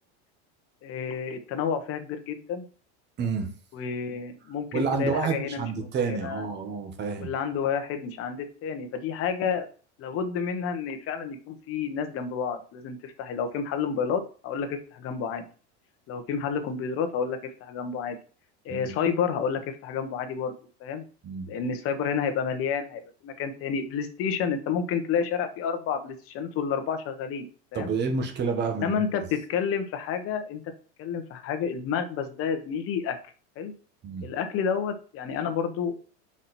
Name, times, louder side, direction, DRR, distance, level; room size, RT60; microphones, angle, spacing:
voice 1, 0.8-2.6 3.7-6.4 7.2-9.7 10.0-15.4 16.1-18.2 18.6-20.5 20.8-21.0 21.5-27.5 27.7-27.9 28.8-30.6 31.0-33.2 33.6-33.7 34.2-35.9, left 6 dB, 40° left, 7 dB, 1.2 m, -30 dB
voice 2, 3.2-3.5 4.7-7.3 18.7-18.9 21.2-21.5 27.7-29.2 34.0-34.3, right 5 dB, 30° right, 5 dB, 1.4 m, -29 dB
5.8 x 4.9 x 4.3 m, 0.39 s
supercardioid pair, 150°, 36 cm